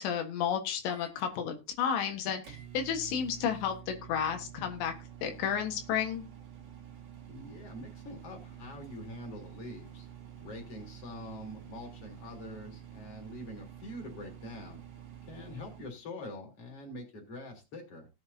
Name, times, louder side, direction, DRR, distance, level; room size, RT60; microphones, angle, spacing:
voice 1, 0.0-4.9 5.2-6.2, left 8 dB, 90° left, 3.7 m, -32 dB
Microwave oven, 0.9-16.0, right 10 dB, 50° right, 1.9 m, -49 dB
voice 2, 7.3-10.1 10.4-14.8 15.2-18.1, left 1 dB, 35° left, 4.0 m, -45 dB
18.0 x 7.9 x 2.7 m
omnidirectional pair, 4.9 m